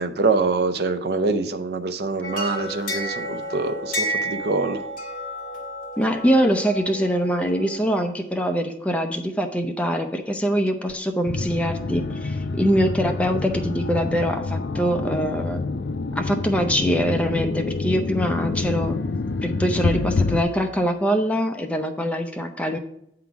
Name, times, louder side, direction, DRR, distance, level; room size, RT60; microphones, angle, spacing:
voice 1, 0.0-4.8, right 3 dB, 65° right, 8 dB, 0.5 m, -24 dB
sound 1, 2.2-7.9, equal, 50° left, 1.7 m, -31 dB
voice 2, 6.0-15.6 16.2-19.0 19.4-22.8, equal, 5° left, 4 dB, 0.5 m, -23 dB
sound 2, 11.3-20.4, left 3 dB, 75° left, 0.4 m, -27 dB
8.4 x 3.8 x 5.8 m, 0.76 s
head